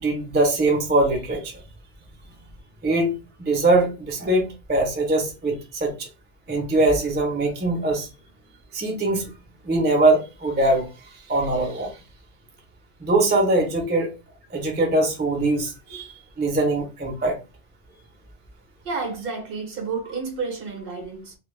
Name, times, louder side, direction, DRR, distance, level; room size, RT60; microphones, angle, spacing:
voice 1, 0.0-1.6 2.8-3.1 3.5-6.1 6.5-8.1 8.7-9.2 9.6-10.9 11.3-11.9 13.0-14.1 14.5-16.1 16.4-17.4, right 2 dB, 15° right, 0.4 m, -22 dB
voice 2, 18.8-21.3, right 4 dB, 60° right, 0.9 m, -30 dB
2.2 x 2.0 x 3.0 m
omnidirectional pair, 1.1 m